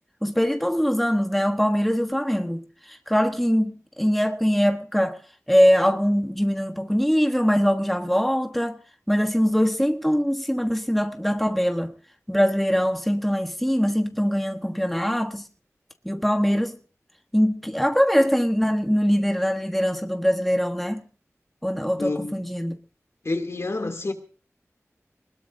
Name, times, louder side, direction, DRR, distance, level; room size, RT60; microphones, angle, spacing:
voice 1, 0.2-5.2 5.5-8.8 9.1-11.9 12.3-15.5 16.0-16.8 17.3-21.1 21.6-22.8, equal, ahead, 1.3 m, -22 dB
voice 2, 22.0-22.4 23.2-24.1, left 2 dB, 60° left, 2.9 m, -28 dB
22.0 x 20.5 x 2.7 m
wide cardioid pair, 70°, 5 cm